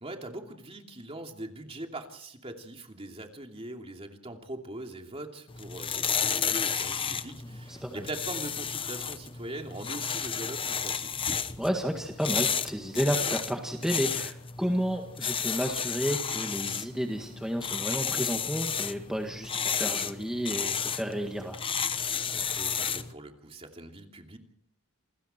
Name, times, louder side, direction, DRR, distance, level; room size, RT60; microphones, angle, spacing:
voice 1, 0.0-11.1 22.3-24.4, right 1 dB, 25° right, 3 dB, 2.8 m, -41 dB
sound 1, 5.5-23.1, left 7 dB, 25° left, 0.9 m, -32 dB
voice 2, 7.7-8.1 11.6-21.6, equal, 5° right, 2 dB, 1.8 m, -31 dB
28.5 x 21.0 x 4.5 m, 0.65 s
head